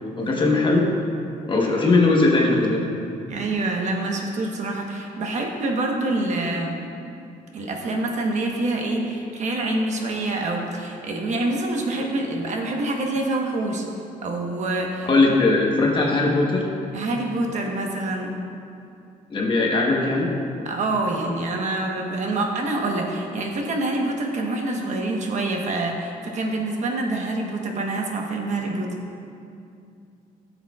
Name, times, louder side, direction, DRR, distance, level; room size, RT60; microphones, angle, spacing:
voice 1, 0.2-0.9 1.5-2.9 15.0-16.7 19.3-20.3, left 3 dB, 30° left, -2 dB, 1.1 m, -19 dB
voice 2, 3.3-6.8 7.5-13.8 14.2-15.4 16.9-18.4 20.6-29.0, right 2 dB, 50° right, 1 dB, 1.1 m, -26 dB
14.0 x 7.2 x 2.4 m, 2.6 s
cardioid pair, 125°, 15 cm